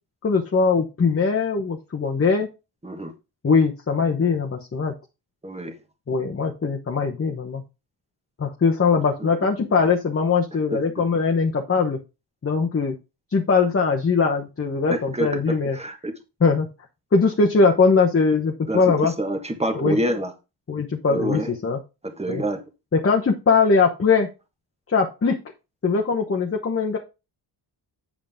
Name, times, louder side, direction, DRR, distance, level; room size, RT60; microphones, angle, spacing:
voice 1, 0.2-2.5 3.4-4.9 6.1-7.6 8.4-12.0 12.4-13.0 13.3-15.8 16.4-16.7 17.1-19.1 19.8-20.0 20.7-21.8 22.3-22.4 22.9-24.3 24.9-25.4 25.8-27.0, left 4 dB, 30° left, 1.0 m, -21 dB
voice 2, 5.4-5.7 9.2-9.3 10.7-11.1 14.9-15.4 15.7-16.1 18.7-20.3 21.1-21.5 22.0-22.6, right 1 dB, 15° right, 1.4 m, -27 dB
7.8 x 7.2 x 3.6 m
wide cardioid pair, 145°, 44 cm